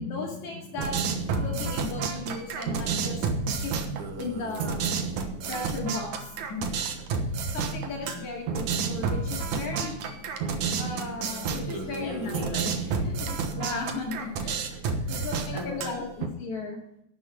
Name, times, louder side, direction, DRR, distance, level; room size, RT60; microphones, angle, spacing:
voice 1, 0.0-3.3 3.6-4.8 5.5-6.7 7.5-10.0 10.8-12.4 13.5-14.3 15.1-16.8, left 3 dB, 70° left, -1 dB, 3.7 m, -35 dB
sound 1, 0.8-16.3, right 5 dB, 75° right, 2.7 m, -30 dB
voice 2, 11.6-13.3 14.4-16.0, left 2 dB, 30° left, -3 dB, 4.4 m, -40 dB
12.0 x 8.3 x 7.5 m, 0.74 s
omnidirectional pair, 3.4 m